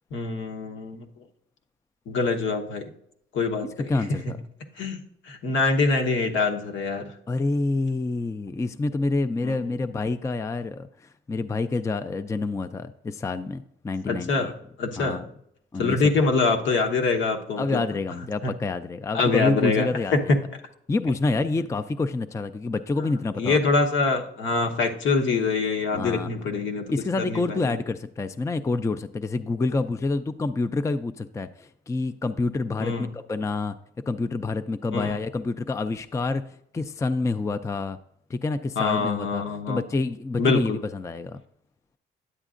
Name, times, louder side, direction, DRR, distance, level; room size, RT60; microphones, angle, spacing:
voice 1, 0.1-1.1 2.1-2.8 3.3-3.7 4.3-4.4 4.8-5.0 5.2-7.0 9.4-9.6 14.1-14.5 14.8-15.2 15.8-17.8 18.4-18.5 19.1-20.2 23.4-26.8 27.2-27.7 32.8-33.1 34.9-35.2 38.8-39.8 40.4-40.8, left 4 dB, 70° left, 3 dB, 1.1 m, -24 dB
voice 2, 3.9-4.4 7.3-14.5 15.0-15.3 15.7-16.3 17.6-20.3 20.9-23.7 25.9-26.3 26.9-33.7 34.1-36.4 36.7-38.0 38.3-41.4, left 3 dB, 15° left, 10 dB, 0.4 m, -28 dB
9.9 x 8.0 x 2.5 m, 0.72 s
cardioid pair, 90°, 20 cm